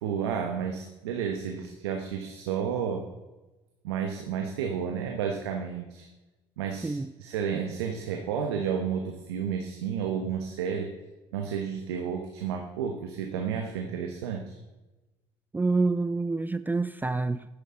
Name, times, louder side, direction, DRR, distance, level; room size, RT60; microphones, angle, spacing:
voice 1, 0.0-3.1 3.8-6.1 6.6-10.9 11.3-14.6, right 7 dB, 90° right, 1.1 m, -31 dB
voice 2, 15.5-17.5, right 3 dB, 15° right, 0.5 m, -27 dB
13.5 x 10.0 x 3.8 m
hypercardioid pair, 70°, 13 cm